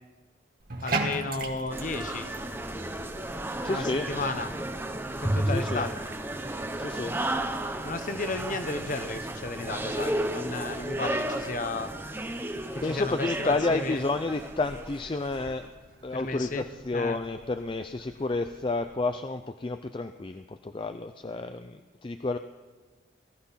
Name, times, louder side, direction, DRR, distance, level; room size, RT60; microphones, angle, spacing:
Bathtub (filling or washing), 0.6-18.9, right 3 dB, 50° right, 1.9 m, -42 dB
voice 1, 0.8-2.3 3.7-4.5 5.2-5.9 7.8-11.9 12.7-14.0 16.1-16.6 16.9-17.2, left 3 dB, 45° left, 8 dB, 1.1 m, -33 dB
sound 1, 1.7-15.5, right 1 dB, 10° right, 0.8 m, -33 dB
voice 2, 3.6-4.1 5.5-5.9 6.8-7.1 12.8-15.7 16.0-22.4, left 3 dB, 25° left, 9 dB, 0.4 m, -30 dB
18.5 x 13.5 x 5.7 m, 1.4 s
head